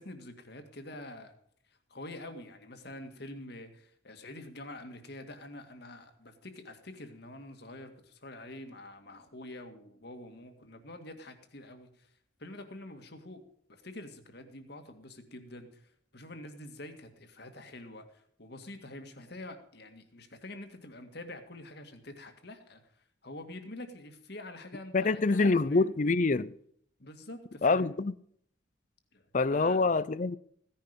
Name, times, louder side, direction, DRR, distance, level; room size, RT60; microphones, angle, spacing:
voice 1, 0.0-1.4 1.7-12.1 12.4-13.4 13.7-25.9 27.0-27.9 29.1-30.0, left 1 dB, 60° left, 2.1 m, -46 dB
voice 2, 24.9-26.5 27.6-28.1 29.3-30.4, left 3 dB, 40° left, 0.5 m, -26 dB
16.0 x 10.5 x 5.2 m
head